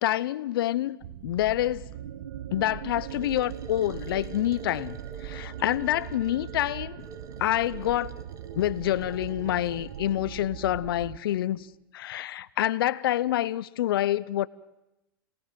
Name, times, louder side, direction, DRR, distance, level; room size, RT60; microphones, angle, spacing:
voice 1, 0.0-1.0 1.2-1.8 2.5-5.0 5.2-7.0 7.4-8.2 8.6-11.6 11.9-14.5, left 13 dB, 75° left, 0.9 m, -27 dB
sound 1, 1.0-11.2, right 13 dB, 65° right, 0.8 m, -42 dB
sound 2, 1.9-11.7, right 9 dB, 85° right, 1.6 m, -44 dB
sound 3, 3.1-10.2, right 4 dB, 30° right, 1.9 m, -48 dB
27.5 x 18.5 x 7.7 m
hypercardioid pair, 120°, 12 cm